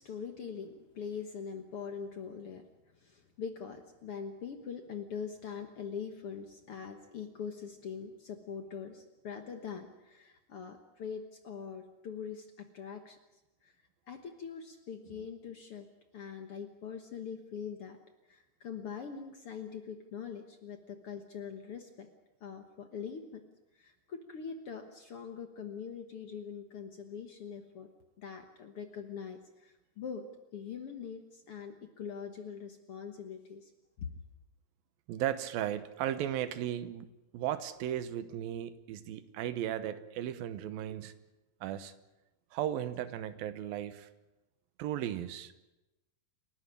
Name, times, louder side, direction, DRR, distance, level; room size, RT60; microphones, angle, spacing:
voice 1, 0.0-2.6 3.0-13.2 13.6-13.7 14.1-15.9 16.1-18.0 18.3-22.1 22.4-23.4 23.8-27.9 28.2-30.3 30.5-33.7 34.0-34.1, left 6 dB, 55° left, 7 dB, 1.6 m, -43 dB
voice 2, 35.1-37.1 37.3-41.1 41.6-41.9 42.5-44.1 44.8-45.5, right 11 dB, 85° right, 12 dB, 2.8 m, -36 dB
28.5 x 12.5 x 9.8 m, 1.0 s
omnidirectional pair, 4.1 m